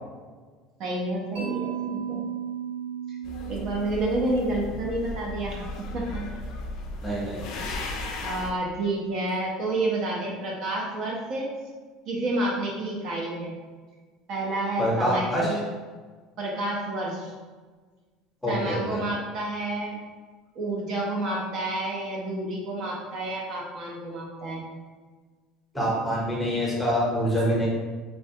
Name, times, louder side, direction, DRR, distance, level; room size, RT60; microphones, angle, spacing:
voice 1, 0.8-2.2 3.1-3.2 3.5-6.2 7.3-7.7 8.2-11.5 12.1-13.5 14.3-15.6 16.4-17.3 18.5-20.0 20.5-24.6, right 2 dB, 45° right, -2 dB, 0.5 m, -30 dB
Mallet percussion, 1.3-5.4, right 9 dB, 80° right, 1.1 m, -35 dB
sound 1, 3.2-8.5, left 2 dB, 55° left, 0.4 m, -36 dB
voice 2, 7.0-7.6 14.8-15.5 18.4-19.0 25.7-27.7, equal, ahead, -6 dB, 0.8 m, -25 dB
3.2 x 2.2 x 2.7 m, 1.4 s
cardioid pair, 160°, 0 cm